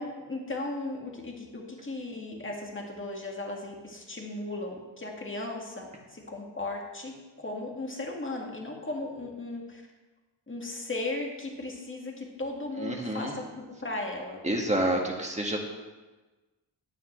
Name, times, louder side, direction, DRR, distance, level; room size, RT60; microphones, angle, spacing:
voice 1, 0.0-9.8 10.5-14.4, left 2 dB, 25° left, 0 dB, 2.0 m, -36 dB
voice 2, 12.8-13.3 14.4-15.6, right 1 dB, 15° right, 0 dB, 1.9 m, -28 dB
12.0 x 9.2 x 3.3 m, 1.2 s
cardioid pair, 75°, 45 cm